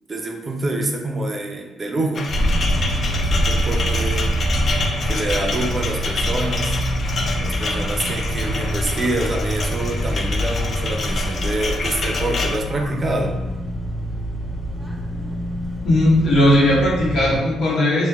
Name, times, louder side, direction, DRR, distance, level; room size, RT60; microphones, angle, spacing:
voice 1, 0.1-2.3 3.2-4.3 5.0-6.8 7.4-13.4, right 2 dB, 35° right, 2 dB, 0.5 m, -26 dB
sound 1, 2.1-12.6, left 3 dB, 50° left, 0.4 m, -28 dB
sound 2, 2.3-17.4, equal, ahead, 0.8 m, -25 dB
voice 2, 15.8-18.1, left 1 dB, 75° left, -5 dB, 1.1 m, -17 dB
4.4 x 2.1 x 2.4 m, 1.1 s
cardioid pair, 90°, 0 cm